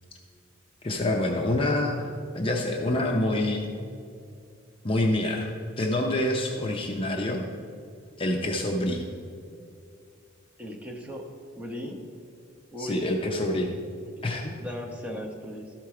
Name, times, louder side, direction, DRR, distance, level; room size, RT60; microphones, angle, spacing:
voice 1, 0.8-2.1 2.3-3.7 4.8-5.5 5.8-7.4 8.2-9.0 12.8-13.7 14.2-14.5, left 1 dB, 25° left, 1 dB, 0.6 m, -26 dB
voice 2, 10.6-11.2 11.6-12.0 12.7-13.0 14.6-15.7, equal, 5° right, -1 dB, 0.9 m, -37 dB
12.5 x 4.5 x 4.8 m, 2.4 s
head